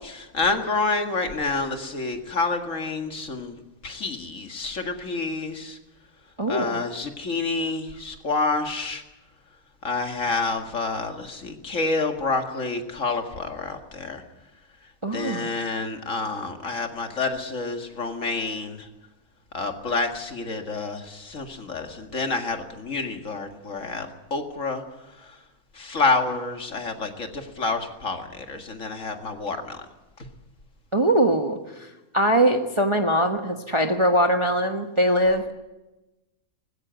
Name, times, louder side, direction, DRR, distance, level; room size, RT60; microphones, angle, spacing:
voice 1, 0.3-3.5 3.8-5.8 6.5-9.0 9.8-14.2 15.1-18.9 19.5-24.8 25.8-29.8, left 3 dB, 60° left, 5 dB, 2.3 m, -28 dB
voice 2, 6.4-6.8 15.0-15.6 30.9-31.6 32.1-35.5, right 1 dB, 20° right, 4 dB, 1.2 m, -22 dB
20.0 x 16.0 x 9.2 m, 1.0 s
omnidirectional pair, 1.5 m